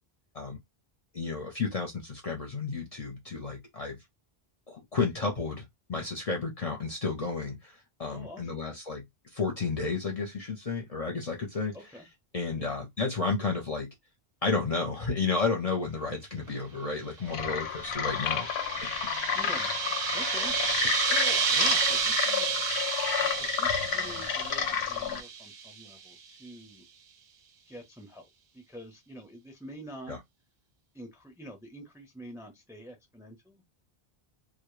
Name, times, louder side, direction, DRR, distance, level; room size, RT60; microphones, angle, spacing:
voice 1, 1.1-4.0 4.7-9.0 9.3-11.8 12.3-13.9 14.4-18.5 18.8-19.0 30.1-30.2, left 4 dB, 45° left, 0.6 m, -32 dB
voice 2, 8.1-8.6 11.7-12.1 12.6-12.8 16.3-16.8 19.3-19.8 20.1-22.6 23.2-26.9 27.7-28.3 28.5-30.2 30.9-33.6, equal, 5° right, 0.5 m, -47 dB
sound 1, 17.3-25.2, left 7 dB, 85° left, 0.8 m, -31 dB
sound 2, 17.5-25.8, right 6 dB, 55° right, 0.5 m, -31 dB
2.1 x 2.0 x 3.0 m
omnidirectional pair, 1.0 m